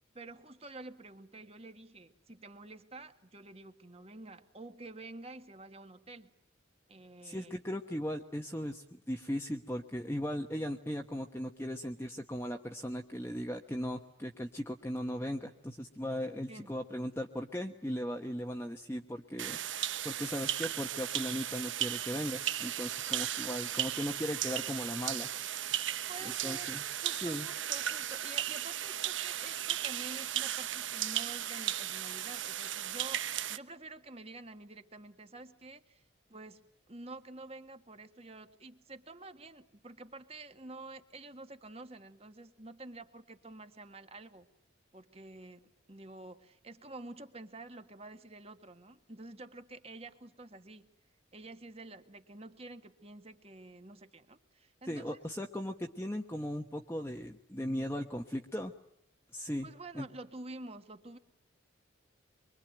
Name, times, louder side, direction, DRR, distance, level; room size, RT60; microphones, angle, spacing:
voice 1, 0.1-6.3 6.9-7.6 16.5-16.7 26.1-33.2 33.5-36.0 36.3-36.6 36.9-44.5 44.9-50.9 51.3-55.2 59.6-61.2, right 2 dB, 30° right, 8 dB, 1.8 m, -49 dB
voice 2, 7.2-25.3 26.4-26.8 27.2-27.5 54.8-58.7 59.3-59.7 59.9-60.1, equal, 10° left, 3 dB, 1.2 m, -38 dB
sound 1, 19.4-33.6, right 11 dB, 75° right, 1.1 m, -36 dB
25.5 x 24.0 x 9.1 m, 0.80 s
head